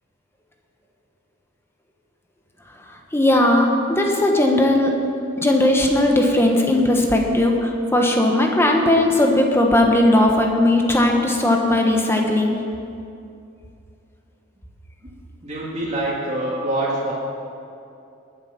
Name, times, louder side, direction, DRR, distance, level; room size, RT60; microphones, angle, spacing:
voice 1, 3.1-4.9 5.4-12.6, left 1 dB, 15° left, 1 dB, 1.4 m, -17 dB
voice 2, 15.4-17.1, right 1 dB, 35° right, -7 dB, 2.3 m, -25 dB
19.5 x 8.1 x 5.9 m, 2.6 s
head